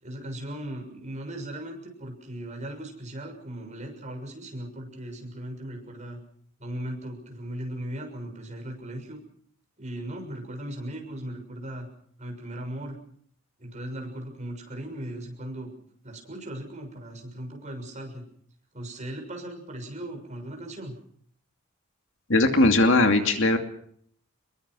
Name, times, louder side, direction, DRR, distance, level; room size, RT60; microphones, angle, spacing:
voice 1, 0.0-6.2 6.6-9.2 9.8-11.9 12.2-13.0 13.6-15.7 16.0-18.2 18.7-21.0, right 1 dB, 35° right, 2 dB, 6.6 m, -37 dB
voice 2, 22.3-23.6, left 2 dB, 60° left, 5 dB, 2.6 m, -19 dB
26.5 x 22.5 x 6.3 m, 0.65 s
head